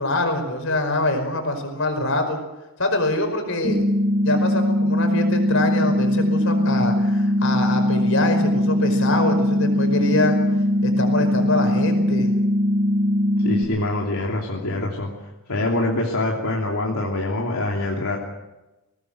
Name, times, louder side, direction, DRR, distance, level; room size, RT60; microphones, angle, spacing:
voice 1, 0.0-2.4 2.8-3.8 4.2-10.4 10.8-12.3, left 2 dB, 65° left, 5 dB, 5.3 m, -24 dB
sound 1, 3.6-13.6, left 1 dB, 40° right, 4.0 m, -20 dB
voice 2, 13.4-15.1 15.5-18.2, left 2 dB, 80° left, -2 dB, 3.0 m, -24 dB
21.5 x 19.0 x 7.9 m, 1.0 s
head